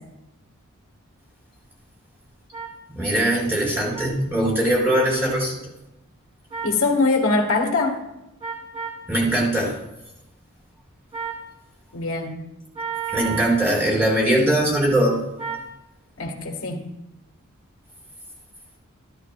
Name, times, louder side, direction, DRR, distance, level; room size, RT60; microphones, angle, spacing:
sound 1, 2.5-2.7 3.9-4.1 4.9-5.1 6.5-6.8 8.4-9.0 11.1-11.4 12.7-13.6 15.4-15.7, right 6 dB, 30° right, 2.9 m, -31 dB
voice 1, 3.0-5.6 9.1-9.8 13.1-15.2, right 1 dB, 10° right, -4 dB, 4.7 m, -21 dB
voice 2, 6.6-8.0 11.9-12.4 16.2-16.8, left 3 dB, 75° left, 2 dB, 1.6 m, -22 dB
14.5 x 13.0 x 2.3 m, 0.90 s
head